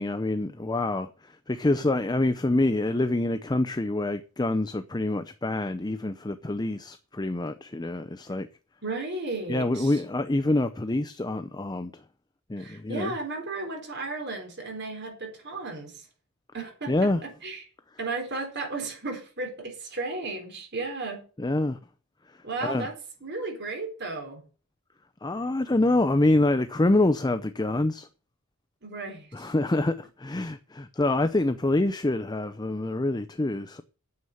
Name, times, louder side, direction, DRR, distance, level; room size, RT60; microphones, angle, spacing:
voice 1, 0.0-8.5 9.5-12.0 12.5-13.1 16.9-17.2 21.4-21.8 22.6-22.9 25.2-28.1 29.3-33.8, left 2 dB, 20° left, 0.6 m, -26 dB
voice 2, 8.8-10.0 12.6-16.1 16.5-16.9 17.4-17.6 18.0-21.2 22.4-22.9 23.2-24.4 28.8-29.5, right 3 dB, 55° right, 4.2 m, -34 dB
9.6 x 7.3 x 7.8 m
head